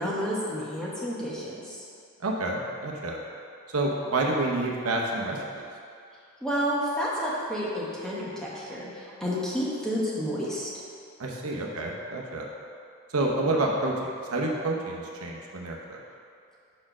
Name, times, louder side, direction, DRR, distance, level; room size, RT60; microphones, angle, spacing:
voice 1, 0.0-1.8 6.4-10.7, equal, 5° left, -7 dB, 1.0 m, -30 dB
voice 2, 2.2-3.2 3.7-5.6 11.2-12.5 13.1-16.0, right 2 dB, 80° right, -1 dB, 0.8 m, -28 dB
5.0 x 4.4 x 6.0 m, 2.4 s
head